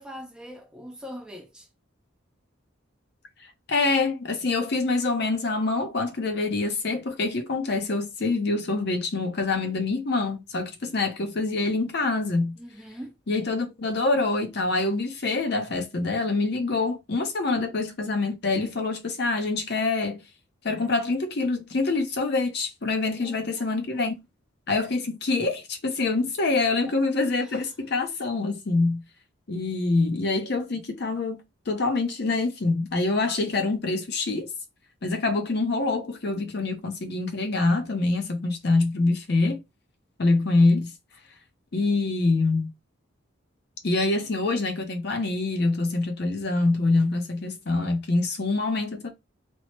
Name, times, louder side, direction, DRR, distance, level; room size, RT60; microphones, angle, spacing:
voice 1, 0.0-1.7 12.6-13.2 17.5-17.8 23.1-24.1 26.6-26.7 27.4-27.6, equal, 5° right, 0.4 m, -43 dB
voice 2, 3.7-12.6 13.3-20.2 20.6-24.2 24.7-29.0 29.5-34.5 35.0-39.6 40.2-40.9 41.7-42.7 43.8-49.1, left 3 dB, 50° left, 0.6 m, -25 dB
2.9 x 2.0 x 3.0 m
head